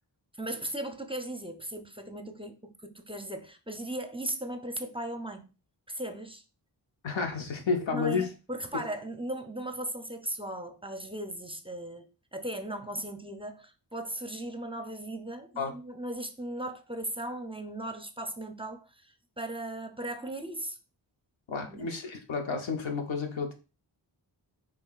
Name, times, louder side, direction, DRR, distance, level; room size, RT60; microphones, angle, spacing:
voice 1, 0.4-5.4 5.9-6.4 7.9-20.8 21.7-21.9, right 1 dB, 10° right, 0.5 m, -37 dB
voice 2, 7.0-8.3 15.6-15.7 21.5-23.5, left 5 dB, 90° left, 0.9 m, -31 dB
5.6 x 2.9 x 2.4 m
cardioid pair, 55°, 44 cm